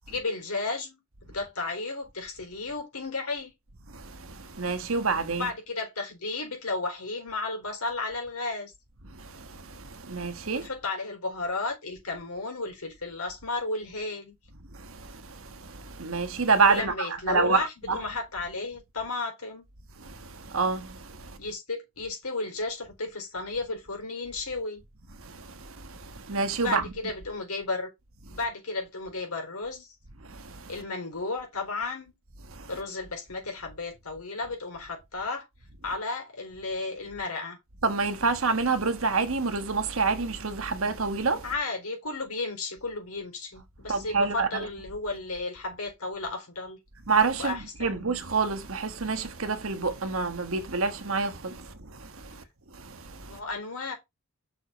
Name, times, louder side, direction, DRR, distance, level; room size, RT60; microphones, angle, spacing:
voice 1, 0.1-1.0 1.3-3.5 5.4-8.7 10.5-14.3 16.7-19.7 21.4-24.8 26.6-27.9 28.3-29.9 30.7-32.2 32.7-35.5 35.8-37.6 41.4-46.8 47.4-48.0 53.3-53.9, left 3 dB, 85° left, 4.2 m, -33 dB
voice 2, 3.9-5.5 9.1-10.7 14.7-18.0 20.0-21.4 25.2-26.9 30.2-30.7 32.5-32.7 37.8-41.5 43.9-44.7 47.1-52.4 52.7-53.4, right 4 dB, 70° right, 1.3 m, -28 dB
6.3 x 4.8 x 5.0 m
head